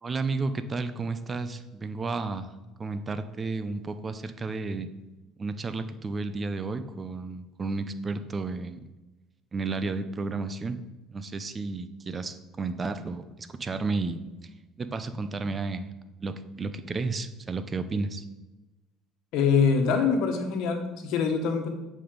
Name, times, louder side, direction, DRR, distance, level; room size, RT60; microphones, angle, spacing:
voice 1, 0.0-2.5 2.8-4.9 5.4-8.8 9.5-10.8 11.1-14.2 14.8-15.9 16.2-18.2, right 3 dB, 25° right, 11 dB, 0.7 m, -32 dB
voice 2, 19.3-21.7, left 5 dB, 70° left, 5 dB, 1.3 m, -24 dB
7.8 x 5.3 x 5.1 m, 1.1 s
cardioid pair, 110°, 0 cm